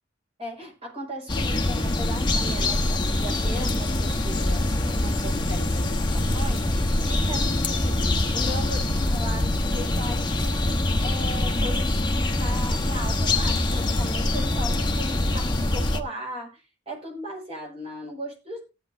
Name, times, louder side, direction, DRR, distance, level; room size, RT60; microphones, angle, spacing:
voice 1, 0.4-8.0 8.3-10.7 11.0-16.6 16.9-18.6, equal, 30° right, -1 dB, 5.6 m, -37 dB
sound 1, 1.3-16.0, left 1 dB, 25° left, 1.1 m, -24 dB
18.0 x 9.4 x 2.7 m, 0.29 s
head